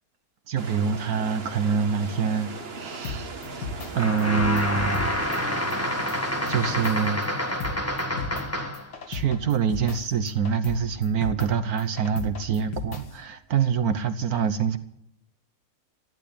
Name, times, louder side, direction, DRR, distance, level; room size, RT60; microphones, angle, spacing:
voice 1, 0.5-5.2 6.5-7.4 9.1-14.8, right 7 dB, 65° right, 1.3 m, -26 dB
sound 1, 0.6-6.9, right 4 dB, 40° right, 1.5 m, -39 dB
sound 2, 2.9-3.9 4.2-5.1 5.3-5.4 5.7-5.8 6.1-6.2 6.5-7.7 8.0-8.4 8.7-10.0 10.3-10.8 11.0-11.5 11.8-13.0, left 6 dB, 85° left, 2.6 m, -34 dB
sound 3, 3.9-8.9, equal, 10° left, 1.6 m, -28 dB
14.5 x 11.0 x 8.5 m
omnidirectional pair, 1.8 m